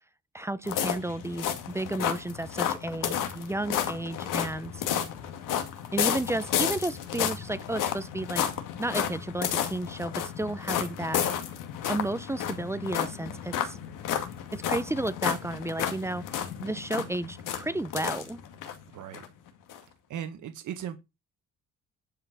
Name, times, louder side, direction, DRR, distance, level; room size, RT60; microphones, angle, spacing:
voice 1, 0.3-4.8 5.9-8.4 8.8-11.2 11.9-13.8 14.5-16.2 16.6-18.4, right 2 dB, 10° right, 0.6 m, -32 dB
sound 1, 0.6-18.8 19.1-19.3 19.7-19.8, left 9 dB, 90° left, 2.2 m, -32 dB
voice 2, 18.9-19.2 20.1-21.0, right 9 dB, 70° right, 1.6 m, -37 dB
11.0 x 5.4 x 6.0 m
cardioid pair, 135°, 31 cm